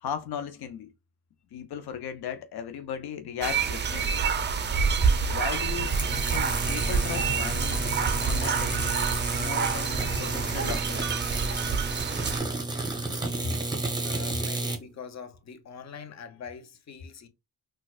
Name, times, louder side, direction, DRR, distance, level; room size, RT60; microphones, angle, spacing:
voice 1, 0.0-0.9 1.5-4.2 5.3-5.9 6.3-7.9 8.2-8.9 9.3-11.0, left 8 dB, 90° left, 0.6 m, -36 dB
sound 1, 3.4-12.4, right 5 dB, 30° right, 0.4 m, -27 dB
sound 2, 5.6-10.7, left 4 dB, 65° left, 1.3 m, -42 dB
sound 3, 5.8-14.8, right 2 dB, 10° right, 0.8 m, -32 dB
voice 2, 14.0-17.3, left 6 dB, 45° left, 0.7 m, -43 dB
4.0 x 2.3 x 2.3 m
cardioid pair, 95°, 37 cm